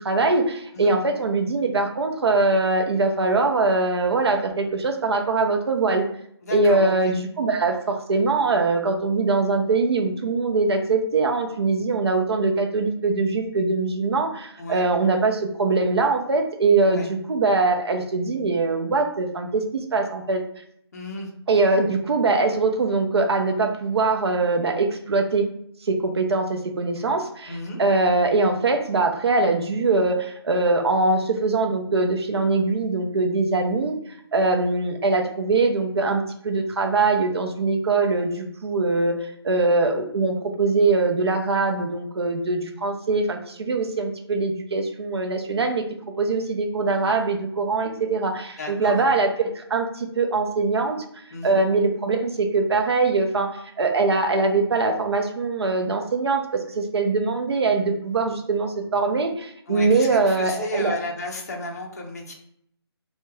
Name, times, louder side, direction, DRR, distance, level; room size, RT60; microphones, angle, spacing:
voice 1, 0.0-6.0 6.5-17.0 17.3-20.4 21.5-25.5 25.8-34.0 34.3-45.9 46.2-53.5 53.8-61.0, right 3 dB, 70° right, 4 dB, 0.5 m, -22 dB
voice 2, 6.4-7.1 14.6-14.9 16.9-17.1 20.9-21.3 27.5-27.8 48.6-49.0 51.3-51.6 59.7-62.3, left 1 dB, 35° left, 0 dB, 0.4 m, -33 dB
3.0 x 2.1 x 2.2 m, 0.70 s
hypercardioid pair, 175°, 14 cm